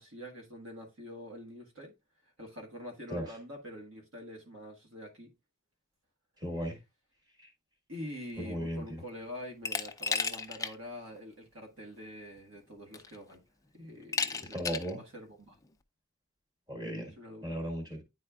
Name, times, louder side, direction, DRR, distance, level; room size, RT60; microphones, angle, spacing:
voice 1, 0.0-1.9 2.4-5.3 7.9-13.4 13.7-15.6 17.2-17.7, equal, 70° right, 1.6 m, -45 dB
voice 2, 6.4-6.8 8.4-8.8 14.5-15.0 16.7-17.1 17.4-18.0, equal, 20° right, 1.7 m, -35 dB
Glass, 9.6-10.7 11.1-11.2 12.4-12.5 12.9-13.3 14.1-14.9, left 5 dB, 15° left, 0.5 m, -33 dB
9.7 x 4.2 x 2.3 m
head